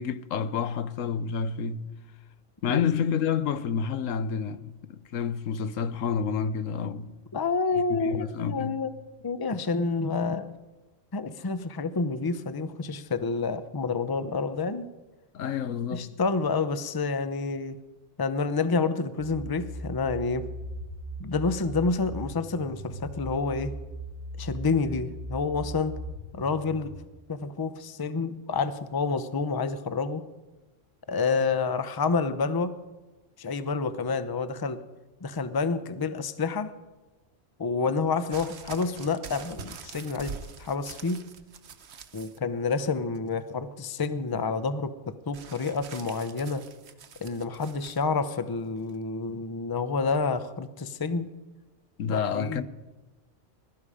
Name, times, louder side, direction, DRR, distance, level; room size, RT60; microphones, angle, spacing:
voice 1, 0.0-1.9 2.6-7.1 7.9-8.8 15.3-16.1 52.0-52.6, left 7 dB, 85° left, 1.2 m, -29 dB
voice 2, 7.3-8.9 9.2-10.5 11.1-14.9 15.9-17.8 18.2-20.5 21.2-23.7 24.4-25.9 26.3-26.9 27.3-30.2 31.1-32.7 33.4-34.8 35.2-36.7 37.6-41.2 42.1-46.6 47.2-51.3 52.1-52.6, left 4 dB, 25° left, 0.6 m, -28 dB
sound 1, 19.2-26.9, right 1 dB, 65° left, 4.9 m, -39 dB
sound 2, 38.3-42.4 42.7-43.3 45.3-48.0 48.9-49.0, right 5 dB, 60° right, 1.1 m, -44 dB
21.5 x 12.5 x 4.9 m
omnidirectional pair, 1.3 m